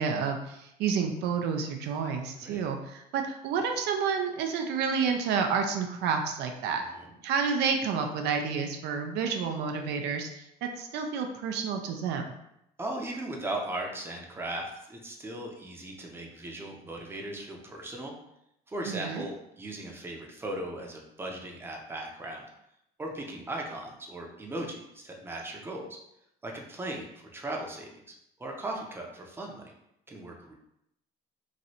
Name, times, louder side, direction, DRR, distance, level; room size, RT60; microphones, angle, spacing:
voice 1, 0.0-6.8 7.2-12.4 18.9-19.2, right 6 dB, 80° right, 4 dB, 0.4 m, -30 dB
voice 2, 12.8-18.1 18.7-22.5 23.0-25.9 26.4-28.1 28.4-29.7 30.1-30.5, right 1 dB, 15° right, 0 dB, 0.6 m, -38 dB
3.0 x 2.6 x 2.8 m, 0.80 s
cardioid pair, 110°, 17 cm